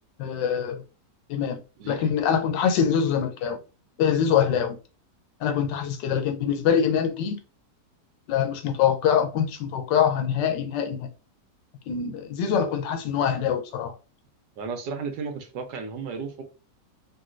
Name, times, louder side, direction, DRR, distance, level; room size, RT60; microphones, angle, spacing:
voice 1, 0.2-0.8 1.3-1.6 1.9-3.6 4.0-4.8 5.4-7.4 8.3-11.1 11.9-13.9, left 8 dB, 90° left, 1.3 m, -24 dB
voice 2, 1.8-2.2 14.6-16.4, right 5 dB, 80° right, 1.3 m, -34 dB
3.9 x 2.2 x 2.5 m
omnidirectional pair, 1.8 m